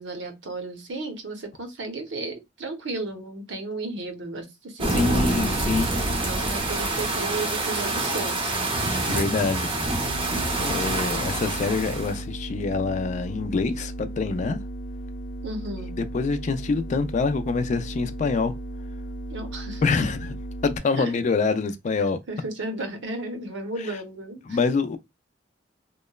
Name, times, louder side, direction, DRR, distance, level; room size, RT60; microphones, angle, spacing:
voice 1, 0.0-5.1 6.0-8.6 15.4-16.0 19.3-19.8 21.0-21.1 22.3-24.6, right 2 dB, 70° right, 0.7 m, -34 dB
sound 1, 4.8-12.2, right 2 dB, 25° right, 0.6 m, -26 dB
voice 2, 4.9-5.9 9.1-9.7 10.6-14.6 16.1-18.6 19.8-20.3 20.6-22.2 24.5-25.0, left 4 dB, 40° left, 0.3 m, -25 dB
sound 2, 9.9-20.8, right 1 dB, 80° left, 0.7 m, -36 dB
2.9 x 2.1 x 2.2 m
head